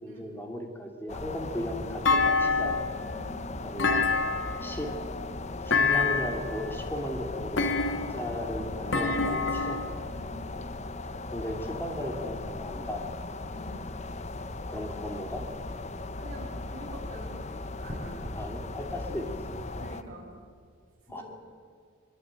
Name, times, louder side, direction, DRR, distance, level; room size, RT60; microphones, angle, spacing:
voice 1, 0.0-2.8 3.6-4.1 4.6-4.9 5.6-10.0 11.3-13.2 14.7-15.5 18.3-19.7 21.1-21.2, left 1 dB, 10° left, 3 dB, 3.0 m, -36 dB
sound 1, 1.1-20.0, left 2 dB, 35° left, 0.9 m, -38 dB
Thump thud, 2.1-3.0 3.8-4.7 5.7-6.5 7.6-8.3 8.9-9.9, left 4 dB, 60° left, 2.1 m, -26 dB
voice 2, 3.0-3.4 5.6-5.8 10.1-10.6 13.5-13.9 16.2-18.7 19.8-20.3 21.1-21.2, equal, 40° right, -5 dB, 5.9 m, -44 dB
22.5 x 22.5 x 9.1 m, 2.1 s
head